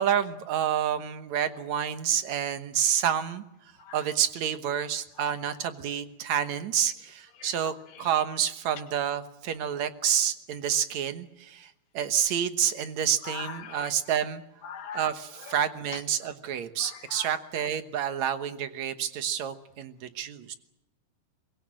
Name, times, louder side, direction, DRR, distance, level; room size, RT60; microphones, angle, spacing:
voice 1, 0.0-3.4 3.9-14.4 14.9-20.5, right 9 dB, 65° right, 10 dB, 2.0 m, -29 dB
voice 2, 13.2-13.9 14.6-15.1 17.1-17.3, left 7 dB, 65° left, 6 dB, 3.5 m, -40 dB
24.0 x 21.5 x 7.6 m, 0.90 s
omnidirectional pair, 4.5 m